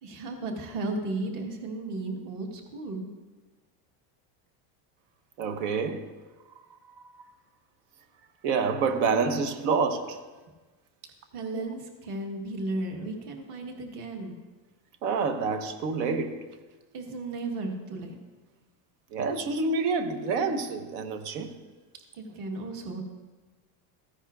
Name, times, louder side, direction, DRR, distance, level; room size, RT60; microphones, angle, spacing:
voice 1, 0.0-3.1 11.3-14.4 16.9-18.2 22.1-23.0, right 2 dB, 45° right, 1.2 m, -34 dB
voice 2, 5.4-6.0 8.4-10.2 11.5-11.6 15.0-16.4 19.1-21.5, right 4 dB, 80° right, 1.0 m, -27 dB
14.0 x 9.8 x 2.4 m
cardioid pair, 165°, 48 cm